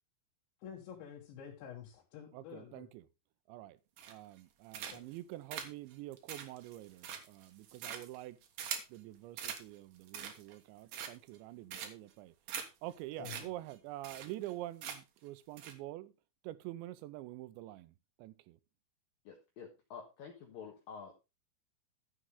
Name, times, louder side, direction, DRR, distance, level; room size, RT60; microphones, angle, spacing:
voice 1, 0.6-2.9 4.8-5.0 13.2-13.5, left 8 dB, 80° left, 3.8 m, -49 dB
voice 2, 2.3-3.1 3.5-3.8 4.1-8.4 8.9-12.3 12.8-16.1 16.4-18.6, right 16 dB, 80° right, 2.9 m, -46 dB
sound 1, 4.0-4.4 4.7-5.2 5.5-9.0 9.4-9.6 10.0-10.5 10.9-11.4 11.7-12.1 12.5-12.6 12.9-13.0 13.2-13.4 13.7-13.8 14.0-14.5 14.8-15.2 15.6-15.7, right 8 dB, 65° right, 2.3 m, -43 dB
voice 3, 19.3-21.1, left 6 dB, 60° left, 2.7 m, -49 dB
12.5 x 7.9 x 3.6 m
omnidirectional pair, 5.3 m